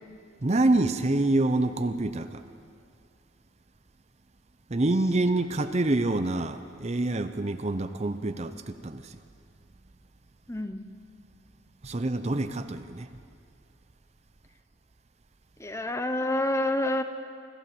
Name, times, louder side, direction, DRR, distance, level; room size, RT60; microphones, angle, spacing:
voice 1, 0.4-2.3 4.7-9.0 11.8-13.1, right 2 dB, 30° right, 9 dB, 0.6 m, -26 dB
voice 2, 10.5-10.8 15.6-17.0, left 1 dB, 15° left, 8 dB, 0.9 m, -28 dB
25.0 x 15.0 x 7.8 m, 2.3 s
head